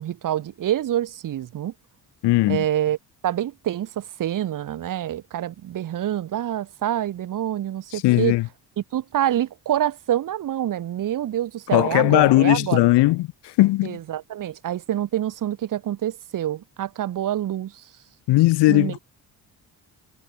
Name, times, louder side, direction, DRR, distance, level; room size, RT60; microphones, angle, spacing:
voice 1, 0.0-1.7 2.5-3.0 3.2-8.4 8.9-12.8 13.8-17.9 18.7-19.0, right 11 dB, 50° right, 0.8 m, -26 dB
voice 2, 2.2-2.6 7.9-8.4 11.7-14.0 18.3-19.0, left 19 dB, 85° left, 0.9 m, -18 dB
supercardioid pair, 70°, 40 cm